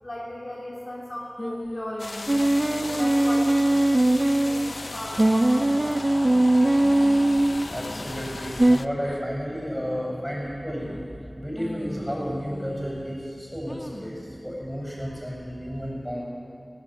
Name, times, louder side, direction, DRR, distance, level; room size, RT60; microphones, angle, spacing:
voice 1, 0.0-6.7, left 1 dB, 50° left, -5 dB, 3.5 m, -37 dB
sound 1, 1.4-2.5 2.8-3.3 3.7-4.1 4.6-5.1 5.6-6.4 6.8-8.5 9.0-9.2 9.8-10.2 10.8-11.2 11.6-13.2 13.7-14.2, left 1 dB, 25° left, 1.6 m, -41 dB
sound 2, 2.0-8.9, left 3 dB, 85° left, 0.5 m, -37 dB
sound 3, 2.3-4.7 5.2-7.7 8.6-8.8, right 1 dB, 40° right, 0.8 m, -20 dB
voice 2, 7.3-10.9 11.3-16.3, equal, ahead, -3 dB, 7.3 m, -32 dB
19.5 x 17.5 x 8.2 m, 2.7 s
wide cardioid pair, 55°, 0 cm